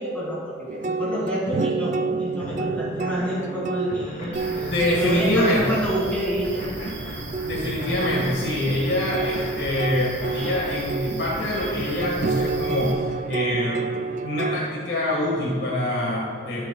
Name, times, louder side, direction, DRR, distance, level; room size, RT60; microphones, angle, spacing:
voice 1, 0.0-6.6, equal, 10° left, -7 dB, 2.0 m, -28 dB
sound 1, 0.7-14.6, right 4 dB, 40° right, 0.3 m, -30 dB
sound 2, 2.4-12.1, left 1 dB, 40° left, 1.4 m, -38 dB
sound 3, 4.3-12.9, right 2 dB, 90° right, 2.0 m, -39 dB
voice 2, 4.6-5.7 7.4-13.9 14.2-16.7, left 1 dB, 60° left, -4 dB, 1.5 m, -25 dB
13.5 x 7.6 x 2.3 m, 2.2 s
head